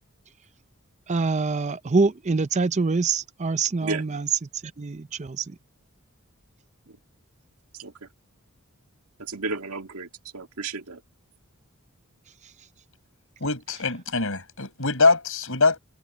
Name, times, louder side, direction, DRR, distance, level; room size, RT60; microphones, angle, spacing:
voice 1, 1.1-4.3 4.8-5.4, right 4 dB, 30° right, 0.5 m, -25 dB
voice 2, 9.2-11.0, right 3 dB, 80° right, 2.0 m, -33 dB
voice 3, 13.4-15.8, left 3 dB, 65° left, 5.8 m, -23 dB
head